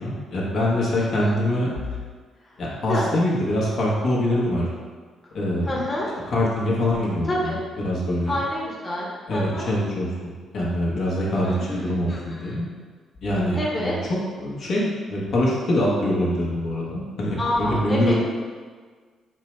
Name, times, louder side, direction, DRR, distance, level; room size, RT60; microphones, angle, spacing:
voice 1, 0.0-1.7 2.6-4.7 5.3-5.8 6.3-7.5 7.8-8.3 9.3-12.7 13.2-18.1, left 1 dB, 65° left, -5 dB, 1.0 m, -24 dB
voice 2, 1.0-1.3 2.9-3.1 5.6-6.1 7.3-7.6 8.3-9.7 11.4-12.6 13.5-13.9 17.4-18.1, left 1 dB, 20° left, -4 dB, 0.9 m, -28 dB
4.4 x 2.1 x 4.4 m, 1.5 s
cardioid pair, 90°, 0 cm